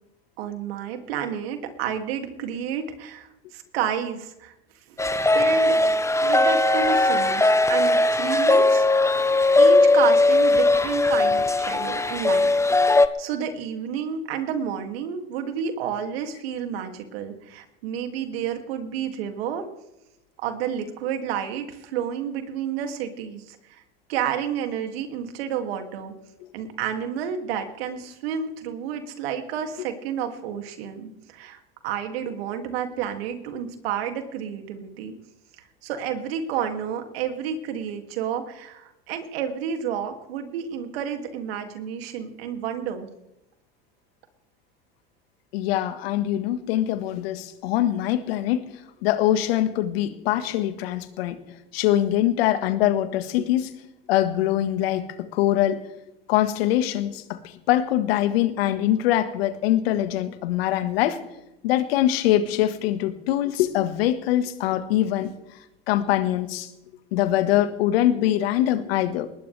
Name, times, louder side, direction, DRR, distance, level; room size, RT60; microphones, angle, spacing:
voice 1, 0.4-4.5 4.9-5.0 5.3-5.8 6.2-8.9 9.5-19.6 20.4-23.8 24.1-26.1 26.5-35.1 35.8-43.1, right 8 dB, 80° right, 5 dB, 2.6 m, -30 dB
sound 1, 5.0-13.1, left 2 dB, 10° left, 0.9 m, -19 dB
voice 2, 45.5-48.6 49.0-51.4 51.7-53.7 54.1-55.0 55.3-55.8 56.3-57.4 57.7-61.2 61.6-65.3 65.9-66.7 67.1-69.4, left 13 dB, 80° left, 10 dB, 1.6 m, -23 dB
20.0 x 20.0 x 3.4 m, 0.92 s
hypercardioid pair, 85°, 30 cm